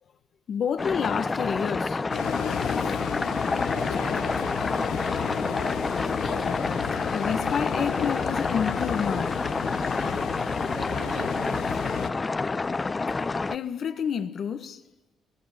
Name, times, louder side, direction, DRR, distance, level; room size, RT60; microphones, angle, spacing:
voice 1, 0.5-2.0 2.8-2.9 6.9-9.4 13.5-14.8, left 7 dB, 60° left, 1.6 m, -29 dB
sound 1, 0.8-13.6, left 3 dB, 25° left, 0.8 m, -28 dB
sound 2, 2.1-12.1, left 10 dB, 90° left, 1.3 m, -33 dB
voice 2, 3.7-4.5 5.4-5.9 10.7-12.2, right 7 dB, 80° right, 3.2 m, -43 dB
23.0 x 20.0 x 9.1 m
cardioid pair, 90°, 0 cm